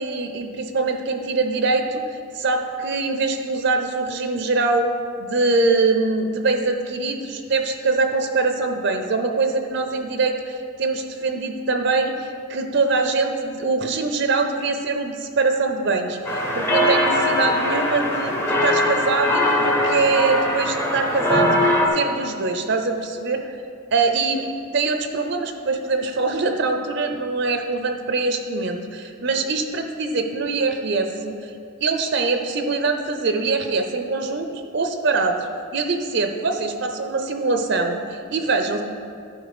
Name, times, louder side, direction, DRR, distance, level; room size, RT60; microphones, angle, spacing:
voice 1, 0.0-2.0 2.3-4.9 5.2-23.4 23.9-24.5 24.7-31.5 31.8-35.4 35.7-38.8, right 3 dB, 55° right, 6 dB, 0.5 m, -23 dB
sound 1, 16.2-21.9, left 1 dB, 10° left, 0.7 m, -21 dB
11.0 x 4.6 x 4.9 m, 2.4 s
head